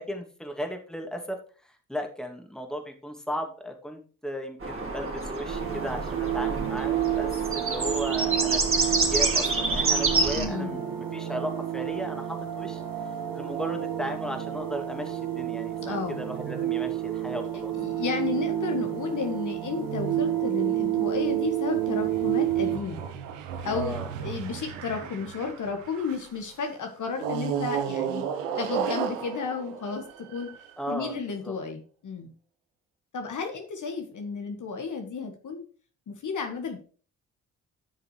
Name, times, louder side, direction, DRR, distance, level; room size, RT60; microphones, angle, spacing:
voice 1, 0.0-12.8 13.3-17.7 23.6-24.1 30.8-31.5, equal, ahead, 3 dB, 2.4 m, -36 dB
sound 1, 4.6-10.5, right 3 dB, 35° right, 3.0 m, -27 dB
sound 2, 5.5-22.8, right 12 dB, 65° right, 1.6 m, -30 dB
voice 2, 10.3-10.8 15.8-16.2 17.8-23.0 23.6-28.3 28.6-30.5 30.9-32.3 33.1-35.6 36.1-36.8, left 5 dB, 55° left, 4 dB, 1.8 m, -32 dB
sound 3, 21.7-26.4 27.2-30.8, right 8 dB, 85° right, 0.8 m, -34 dB
12.0 x 6.7 x 3.2 m, 0.38 s
hypercardioid pair, 40°, 37 cm